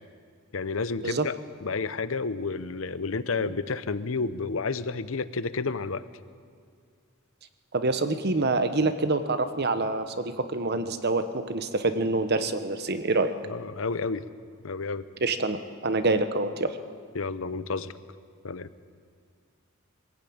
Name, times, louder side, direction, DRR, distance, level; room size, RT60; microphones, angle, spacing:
voice 1, 0.5-1.3 1.6-6.0 13.5-14.2 14.6-15.0 17.1-17.9 18.4-18.7, left 4 dB, 65° left, 14 dB, 0.8 m, -30 dB
voice 2, 7.7-13.3 15.2-16.8, right 2 dB, 50° right, 10 dB, 1.1 m, -26 dB
23.0 x 15.5 x 8.7 m, 2.1 s
head